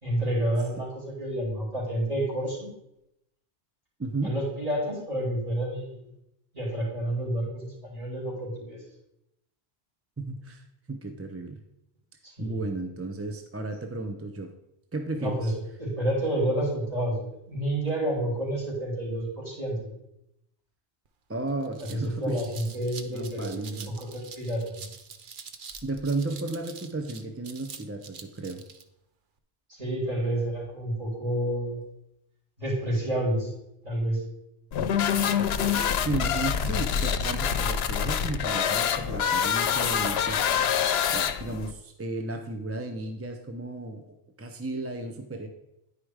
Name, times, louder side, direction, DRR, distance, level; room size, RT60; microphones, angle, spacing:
voice 1, 0.0-2.7 4.2-6.0 6.5-8.8 12.2-12.6 15.2-19.8 21.9-24.9 29.7-31.8 32.6-33.5 33.8-34.2, right 1 dB, 35° right, -4 dB, 3.7 m, -29 dB
voice 2, 4.0-4.4 10.2-11.6 12.4-14.5 14.9-15.5 21.3-22.6 23.1-23.9 25.8-28.6 35.6-40.7 41.1-45.5, right 2 dB, 20° right, 5 dB, 0.4 m, -34 dB
sound 1, 21.1-21.2 21.5-28.8, right 6 dB, 55° right, 0.8 m, -45 dB
sound 2, 34.7-41.7, left 8 dB, 75° left, 0.8 m, -26 dB
10.0 x 5.0 x 4.8 m, 0.85 s
omnidirectional pair, 1.1 m